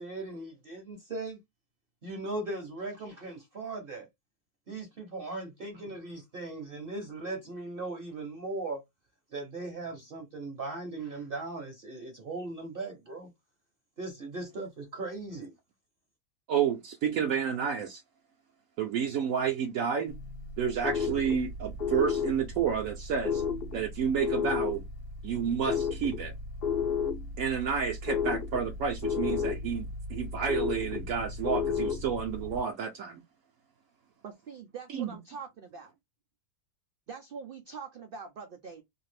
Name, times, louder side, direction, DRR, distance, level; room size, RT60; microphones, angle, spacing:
voice 1, 0.0-1.4 2.0-4.1 4.7-8.8 9.3-13.3 14.0-15.5, right 2 dB, 50° right, 0.8 m, -38 dB
voice 2, 16.5-18.0 18.8-20.1 20.6-23.4 23.7-24.8 25.2-26.3 27.4-33.2 34.9-35.2, right 7 dB, 70° right, 0.9 m, -30 dB
sound 1, 20.1-32.6, left 6 dB, 55° left, 0.7 m, -33 dB
voice 3, 34.2-35.9 37.1-38.8, right 5 dB, 90° right, 0.4 m, -43 dB
2.7 x 2.4 x 3.2 m
omnidirectional pair, 1.5 m